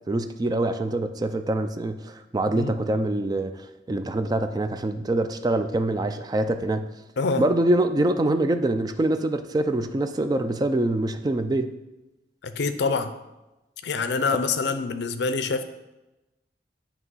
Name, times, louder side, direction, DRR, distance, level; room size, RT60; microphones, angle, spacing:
voice 1, 0.1-6.8 7.4-11.7, right 1 dB, 20° right, 9 dB, 0.3 m, -25 dB
voice 2, 12.4-13.1 13.8-15.6, left 4 dB, 65° left, 10 dB, 0.5 m, -25 dB
8.2 x 2.9 x 5.5 m, 1.0 s
head